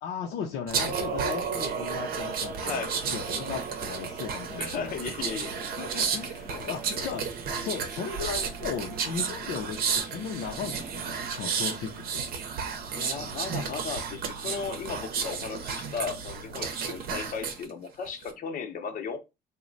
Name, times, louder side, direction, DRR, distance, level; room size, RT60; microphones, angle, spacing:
voice 1, 0.0-4.9 5.8-12.2, left 7 dB, 80° left, 0.6 m, -36 dB
sound 1, 0.7-17.6 18.0-18.3, right 6 dB, 60° right, 0.7 m, -32 dB
voice 2, 2.6-3.0 4.6-5.7 6.5-7.1 12.9-19.2, left 5 dB, 55° left, 0.9 m, -36 dB
3.1 x 2.1 x 3.8 m
cardioid pair, 110°, 17 cm